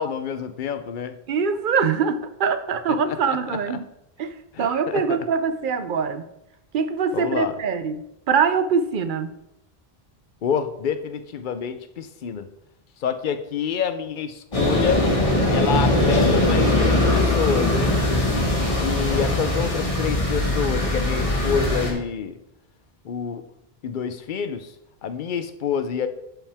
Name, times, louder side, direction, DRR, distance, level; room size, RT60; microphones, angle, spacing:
voice 1, 0.0-1.1 3.1-3.2 3.5-3.6 4.5-5.3 7.1-7.6 10.4-12.5 13.0-15.1 15.5-18.0 18.8-22.4 23.0-23.5 23.8-24.7 25.0-26.1, left 7 dB, 55° left, 0.7 m, -27 dB
voice 2, 1.3-3.9 4.2-6.2 6.7-9.3, right 6 dB, 60° right, 0.7 m, -23 dB
sound 1, 14.5-21.9, left 1 dB, 35° left, 1.6 m, -21 dB
11.5 x 5.6 x 3.4 m
omnidirectional pair, 1.0 m